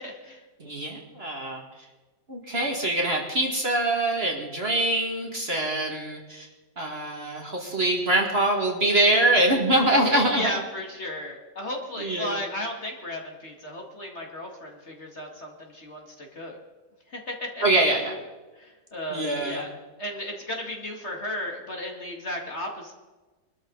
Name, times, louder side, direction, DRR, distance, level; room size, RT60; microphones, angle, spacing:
voice 1, 0.0-0.4 9.9-16.6 17.1-17.6 18.6-19.7 20.0-22.9, left 1 dB, 35° left, 0 dB, 2.3 m, -34 dB
voice 2, 0.6-1.6 2.3-6.5 6.8-10.6 12.0-12.4 17.6-18.1 19.1-19.6, right 1 dB, 35° right, 0 dB, 2.2 m, -24 dB
23.0 x 13.0 x 4.0 m, 1.2 s
omnidirectional pair, 2.0 m